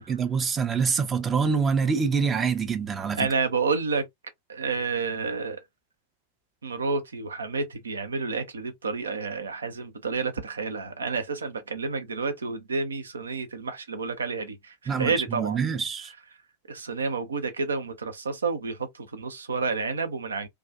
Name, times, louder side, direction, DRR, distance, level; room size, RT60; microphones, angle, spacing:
voice 1, 0.0-3.3 14.9-16.1, right 5 dB, 20° right, 0.5 m, -26 dB
voice 2, 3.2-4.0 4.5-5.6 6.6-14.6 14.8-15.6 16.7-18.8 19.1-20.5, right 4 dB, 70° right, 0.6 m, -29 dB
2.3 x 2.3 x 2.5 m
figure-of-eight pair, 90°, 0 cm